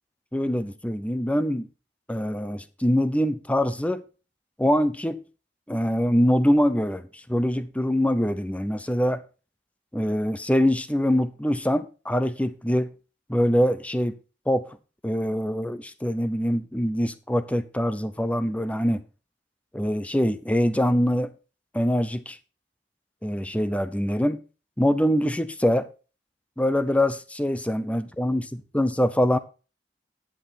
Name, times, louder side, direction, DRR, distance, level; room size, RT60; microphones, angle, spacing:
voice 1, 0.3-1.7 2.1-4.0 4.6-5.2 5.7-9.2 9.9-12.9 13.3-14.2 14.5-14.7 15.0-19.0 19.7-21.3 21.7-22.4 23.2-24.4 24.8-25.9 26.6-29.4, equal, 10° left, 0.7 m, -24 dB
10.5 x 8.4 x 4.1 m
head